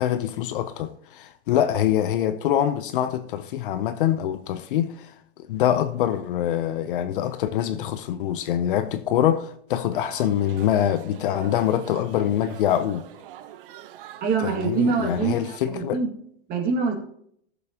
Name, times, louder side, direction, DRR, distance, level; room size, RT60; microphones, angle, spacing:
voice 1, 0.0-5.1 5.5-13.0 14.4-16.0, left 11 dB, 50° left, 0.7 m, -24 dB
sound 1, 9.9-15.6, right 11 dB, 50° right, 0.9 m, -44 dB
voice 2, 14.2-15.4 15.6-16.1 16.5-16.9, right 5 dB, 25° right, 2.1 m, -24 dB
17.0 x 6.9 x 2.9 m
supercardioid pair, 160°, 34 cm